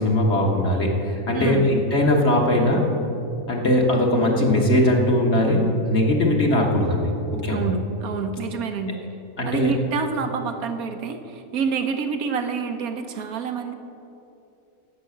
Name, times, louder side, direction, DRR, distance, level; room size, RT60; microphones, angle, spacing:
voice 1, 0.0-2.9 3.5-7.6 9.4-9.7, left 1 dB, 50° left, 0 dB, 1.7 m, -20 dB
voice 2, 1.3-1.7 7.5-9.0 9.4-13.7, right 5 dB, 75° right, 6 dB, 1.3 m, -27 dB
11.0 x 8.0 x 7.9 m, 2.8 s
omnidirectional pair, 1.6 m